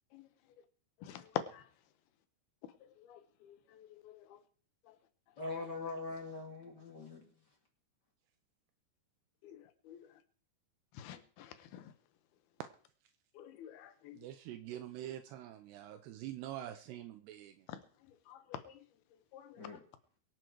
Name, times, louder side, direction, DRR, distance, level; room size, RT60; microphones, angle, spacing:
voice 1, 5.4-7.2 19.6-19.8, left 3 dB, 35° left, 1.9 m, -42 dB
voice 2, 11.0-11.8 13.4-14.2 18.3-18.6 19.3-19.5, left 10 dB, 70° left, 2.9 m, -50 dB
voice 3, 14.1-17.5, right 12 dB, 80° right, 2.8 m, -45 dB
23.0 x 7.9 x 4.6 m
omnidirectional pair, 4.9 m